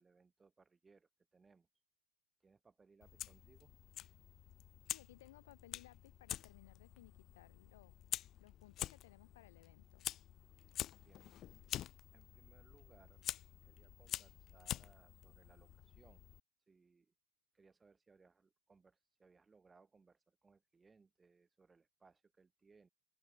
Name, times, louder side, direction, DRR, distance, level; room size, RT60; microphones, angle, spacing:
voice 1, 0.0-1.7 2.4-3.7 11.0-11.2 12.1-13.2 13.6-16.2 16.7-17.1 17.5-22.9, right 4 dB, 10° right, 1.5 m, -68 dB
Fire, 3.0-16.4, left 12 dB, 30° left, 0.3 m, -47 dB
voice 2, 4.9-8.0 8.4-10.1, left 16 dB, 75° left, 2.2 m, -62 dB
open air
supercardioid pair, 150°, 0 cm